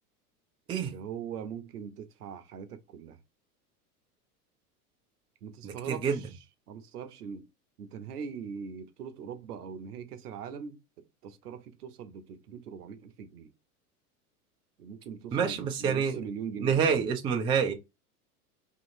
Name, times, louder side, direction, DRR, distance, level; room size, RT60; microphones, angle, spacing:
voice 1, 0.7-3.2 5.4-6.4 6.7-7.4 7.8-10.8 11.2-13.5 14.8-17.0, right 7 dB, 80° right, 0.7 m, -41 dB
voice 2, 5.6-6.2 15.3-16.2 16.6-17.7, right 6 dB, 15° right, 0.3 m, -27 dB
2.8 x 2.7 x 2.5 m
hypercardioid pair, 90°, 46 cm